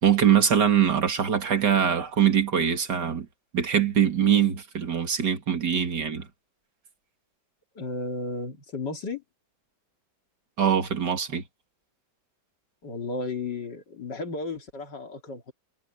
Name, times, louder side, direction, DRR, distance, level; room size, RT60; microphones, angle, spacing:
voice 1, 0.0-3.3 3.5-6.3 10.6-11.4, right 8 dB, 60° right, 2.8 m, -23 dB
voice 2, 7.7-9.2 12.8-15.5, left 3 dB, 60° left, 3.0 m, -34 dB
omnidirectional pair, 2.1 m